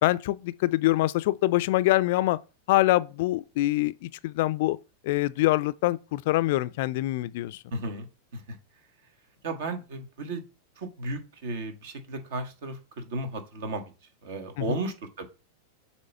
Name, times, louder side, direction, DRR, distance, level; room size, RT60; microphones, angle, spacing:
voice 1, 0.0-2.4 2.7-4.8 5.0-7.6 14.6-14.8, left 17 dB, 55° left, 0.4 m, -25 dB
voice 2, 7.7-8.1 8.3-8.6 9.4-10.4 10.8-13.8 14.2-15.2, right 2 dB, 60° right, 1.6 m, -34 dB
7.3 x 3.1 x 5.5 m
figure-of-eight pair, 95°, 0 cm